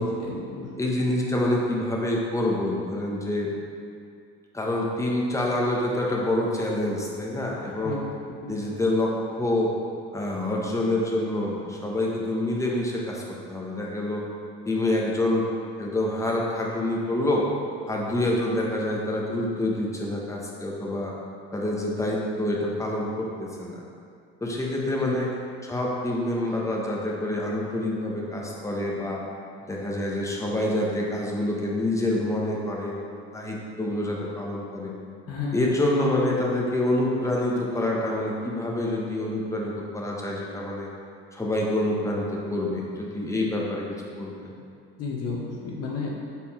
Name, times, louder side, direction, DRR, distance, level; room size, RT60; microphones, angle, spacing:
voice 1, 0.0-0.7 7.8-8.0 8.4-8.6 25.0-25.1 35.3-35.8 45.0-46.1, left 4 dB, 50° left, -2 dB, 0.9 m, -32 dB
voice 2, 0.8-3.5 4.5-8.0 8.5-9.7 10.1-14.2 14.7-15.4 15.8-17.5 17.9-21.1 21.5-23.8 24.4-25.3 25.6-29.2 29.6-34.9 35.5-40.9 41.3-44.5, left 1 dB, 10° left, -3 dB, 1.1 m, -27 dB
5.5 x 4.2 x 4.3 m, 2.4 s
hypercardioid pair, 65°, 31 cm